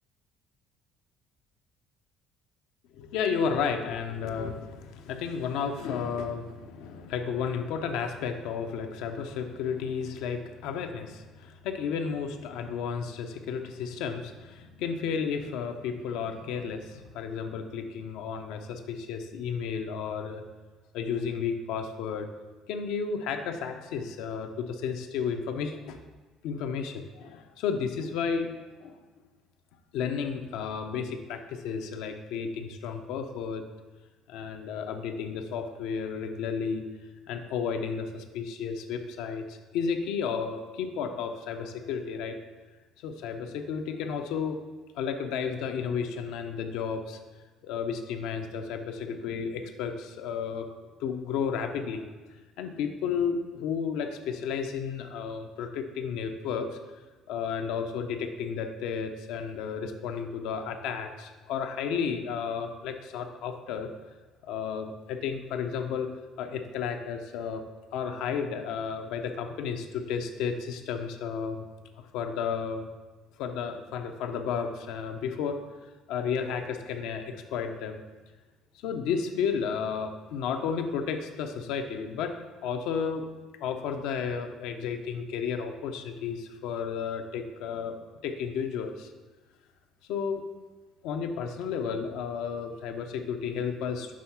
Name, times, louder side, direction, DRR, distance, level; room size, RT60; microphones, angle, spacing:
voice 1, 2.9-20.4 20.9-22.3 22.7-26.0 26.4-28.5 28.8-28.9 29.9-33.6 34.3-36.8 37.3-42.4 43.0-44.6 44.9-47.2 47.6-50.7 51.0-52.1 52.6-56.7 57.3-63.9 64.4-66.1 66.4-67.6 67.9-71.7 72.1-72.9 73.4-75.6 76.1-78.0 78.8-82.3 82.6-83.3 83.6-87.9 88.2-89.1 90.1-90.4 91.0-94.1, left 6 dB, 80° left, 6 dB, 0.6 m, -32 dB
6.3 x 3.5 x 5.7 m, 1.3 s
cardioid pair, 100°, 0 cm